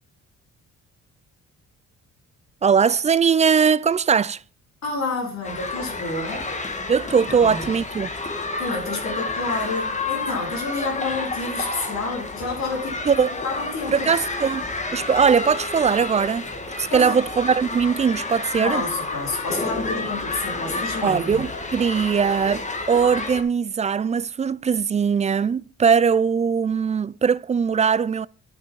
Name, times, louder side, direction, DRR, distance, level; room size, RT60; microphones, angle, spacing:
voice 1, 2.6-4.4 6.9-8.1 13.1-13.3 13.9-14.6 14.9-16.5 16.8-18.9 21.0-28.3, right 6 dB, 25° right, 0.3 m, -20 dB
voice 2, 4.8-6.5 7.3-7.7 8.6-14.1 16.9-17.2 18.6-21.4, left 3 dB, 60° left, 4.8 m, -29 dB
sound 1, 5.4-23.4, left 3 dB, 25° left, 1.6 m, -30 dB
11.0 x 5.9 x 4.7 m
cardioid pair, 90°, 30 cm